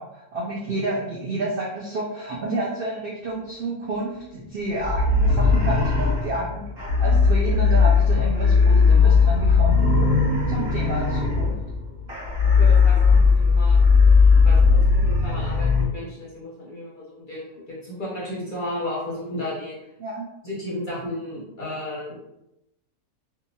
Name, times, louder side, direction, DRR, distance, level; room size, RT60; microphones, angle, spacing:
voice 1, 0.0-6.6 7.0-10.1 10.5-11.6 20.0-20.3, right 2 dB, 70° right, -4 dB, 0.5 m, -30 dB
sound 1, 4.8-15.8, left 4 dB, 45° right, 1.0 m, -18 dB
voice 2, 12.4-13.8 14.4-19.7 20.4-22.2, left 1 dB, 50° left, -6 dB, 0.7 m, -33 dB
2.8 x 2.3 x 2.6 m, 0.87 s
omnidirectional pair, 1.5 m